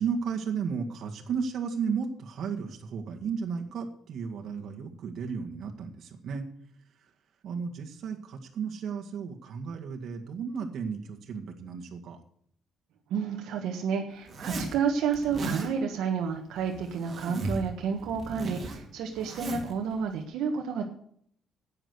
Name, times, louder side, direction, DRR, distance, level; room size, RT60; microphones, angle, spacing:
voice 1, 0.0-6.5 7.4-12.2, right 6 dB, 55° right, 3 dB, 1.9 m, -34 dB
voice 2, 13.1-20.8, right 6 dB, 80° right, 3 dB, 1.4 m, -30 dB
Zipper (clothing), 14.3-14.8 15.1-15.7 16.6-17.7 18.0-19.7, right 2 dB, 30° right, 2.4 m, -36 dB
10.5 x 8.8 x 8.2 m, 0.65 s
cardioid pair, 155°, 0 cm